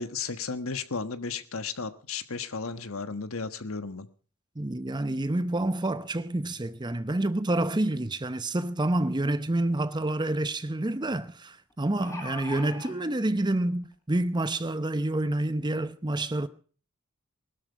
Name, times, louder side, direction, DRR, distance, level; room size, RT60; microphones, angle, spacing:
voice 1, 0.0-4.1, left 4 dB, 65° left, 1.3 m, -34 dB
voice 2, 4.6-16.5, right 1 dB, 20° right, 0.7 m, -28 dB
sound 1, 11.7-12.9 13.8-13.9 14.3-14.4, left 2 dB, 15° left, 3.8 m, -40 dB
20.5 x 12.5 x 4.6 m
head